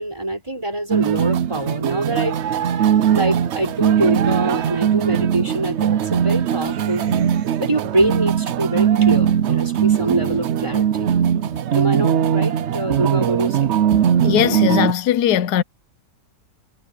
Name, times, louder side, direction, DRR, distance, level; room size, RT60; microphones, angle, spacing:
voice 1, 0.0-2.4 3.1-7.3 7.6-11.1 11.5-13.7, right 1 dB, 15° right, 4.9 m, -24 dB
sound 1, 0.9-14.9, right 9 dB, 65° right, 0.6 m, -20 dB
voice 2, 14.2-15.6, left 10 dB, 65° left, 1.3 m, -18 dB
omnidirectional pair, 1.9 m